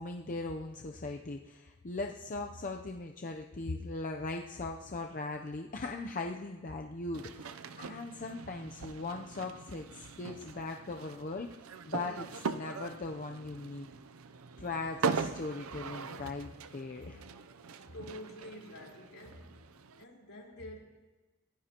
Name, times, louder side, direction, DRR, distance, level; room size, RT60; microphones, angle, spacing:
voice 1, 0.0-11.5 11.9-13.9 14.6-17.2, left 3 dB, 40° left, 2 dB, 0.7 m, -39 dB
sound 1, 7.1-20.0, right 4 dB, 75° right, 0.6 m, -41 dB
voice 2, 17.8-19.6 20.0-20.8, left 1 dB, 70° left, -3 dB, 4.2 m, -47 dB
25.0 x 16.5 x 2.9 m, 1.2 s
head